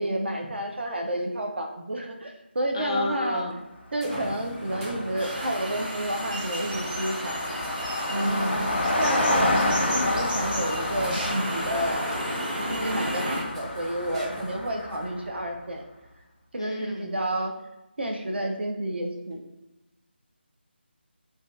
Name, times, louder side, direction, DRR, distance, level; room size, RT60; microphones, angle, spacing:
voice 1, 0.0-3.4 3.9-7.5 8.1-12.2 12.7-15.8 16.5-17.5 18.0-19.4, right 1 dB, 70° right, 3 dB, 0.6 m, -30 dB
voice 2, 2.7-3.6 8.2-8.8 16.6-17.2, left 2 dB, 30° left, 1 dB, 0.3 m, -32 dB
sound 1, 2.9-3.0 4.0-15.0 15.8-15.9 19.3-19.4, right 1 dB, 20° right, 0.7 m, -42 dB
Car passing by, 4.1-4.2 4.4-15.4, left 1 dB, 80° left, 0.6 m, -30 dB
sound 2, 5.2-13.4, equal, 50° right, 1.1 m, -33 dB
2.7 x 2.2 x 3.2 m, 0.95 s
figure-of-eight pair, 170°, 6 cm